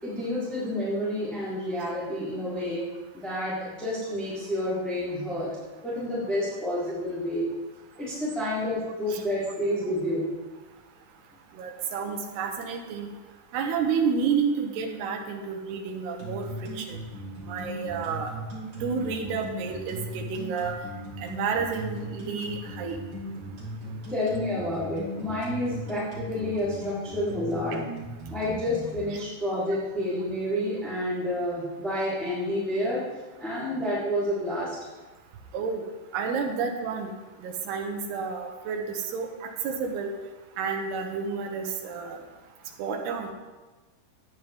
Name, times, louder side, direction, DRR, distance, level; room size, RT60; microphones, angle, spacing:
voice 1, 0.0-2.8 3.1-5.5 5.8-7.5 8.0-10.3 24.1-27.8 28.3-33.1 33.4-34.8, left 1 dB, ahead, -11 dB, 2.2 m, -29 dB
voice 2, 11.6-13.1 13.5-16.5 16.8-17.0 17.5-18.3 18.8-20.7 21.2-23.0 35.5-35.8 36.1-37.1 37.4-40.1 40.6-42.2 42.8-43.3, right 5 dB, 70° right, 2 dB, 2.8 m, -30 dB
sound 1, 16.2-29.0, right 1 dB, 25° right, 2.9 m, -38 dB
12.5 x 9.6 x 3.6 m, 1.2 s
omnidirectional pair, 5.4 m